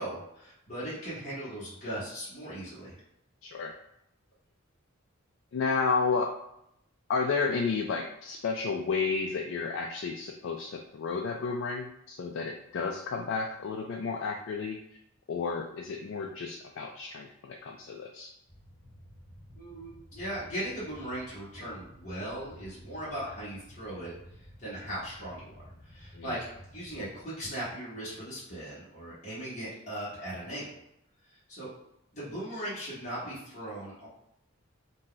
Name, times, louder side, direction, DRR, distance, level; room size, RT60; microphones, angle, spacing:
voice 1, 0.0-2.9 19.6-24.1 24.6-26.5 26.7-30.7 31.5-31.7 32.1-34.1, right 1 dB, 35° left, -11 dB, 1.2 m, -38 dB
voice 2, 3.4-3.7 5.5-6.3 7.1-14.8 15.3-18.3 26.1-26.3, left 4 dB, 65° left, 1 dB, 0.3 m, -31 dB
sound 1, 18.5-27.2, equal, 20° right, 0.9 m, -52 dB
2.7 x 2.3 x 3.8 m, 0.78 s
head